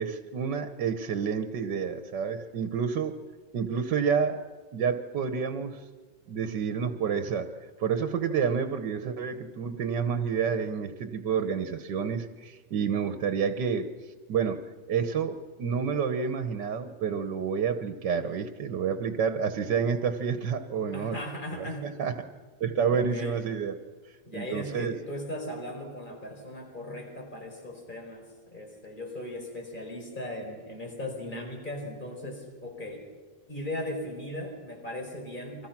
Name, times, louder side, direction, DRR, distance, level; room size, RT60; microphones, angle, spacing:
voice 1, 0.0-3.1 3.5-4.4 4.7-5.9 6.3-14.6 14.9-21.2 21.5-22.1 22.6-23.8 24.3-24.9, right 6 dB, 80° right, 9 dB, 1.8 m, -29 dB
voice 2, 20.9-22.1 22.9-23.4 24.3-33.0 33.5-35.7, left 1 dB, 25° left, 2 dB, 4.9 m, -38 dB
30.0 x 24.0 x 6.0 m, 1.4 s
omnidirectional pair, 1.8 m